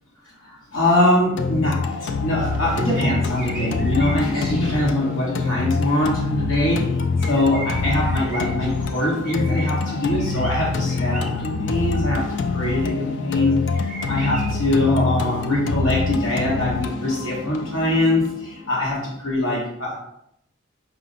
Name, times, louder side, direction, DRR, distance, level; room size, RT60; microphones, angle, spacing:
voice 1, 0.2-20.0, left 1 dB, 85° left, -5 dB, 1.2 m, -23 dB
sound 1, 1.4-19.3, left 4 dB, 60° left, 0.3 m, -25 dB
sound 2, 1.8-1.9 2.9-5.0 5.4-5.5 5.8-5.9 7.2-11.4 12.4-12.5 13.1-13.2 13.7-14.5, right 2 dB, ahead, 0.8 m, -37 dB
4.8 x 2.0 x 3.9 m, 0.79 s
head